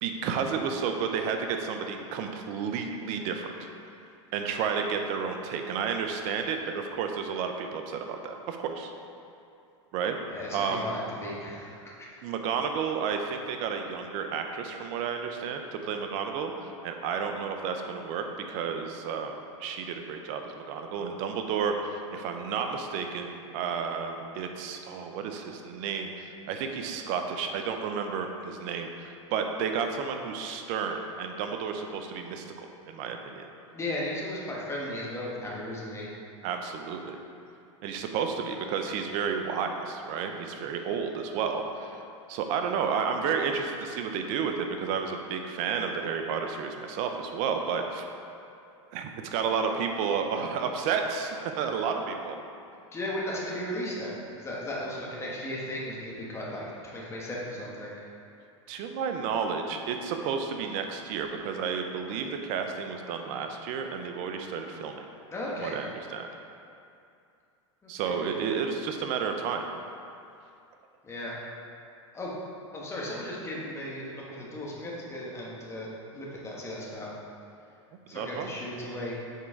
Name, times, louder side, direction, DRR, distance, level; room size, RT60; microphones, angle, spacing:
voice 1, 0.0-3.7 4.3-8.9 9.9-10.2 10.5-10.9 12.2-33.5 36.4-37.2 37.8-42.0 42.3-48.1 48.9-52.4 58.7-65.0 65.6-66.3 67.9-69.6 78.1-78.5, right 6 dB, 50° right, 5 dB, 0.7 m, -31 dB
voice 2, 10.3-11.9 33.7-36.1 52.9-57.9 65.3-65.8 67.8-67.9 68.2-68.3 71.0-71.3 72.1-72.3 72.7-77.1 78.1-79.1, left 1 dB, 15° left, -4 dB, 1.3 m, -36 dB
6.6 x 4.4 x 3.7 m, 2.6 s
hypercardioid pair, 110°, 16 cm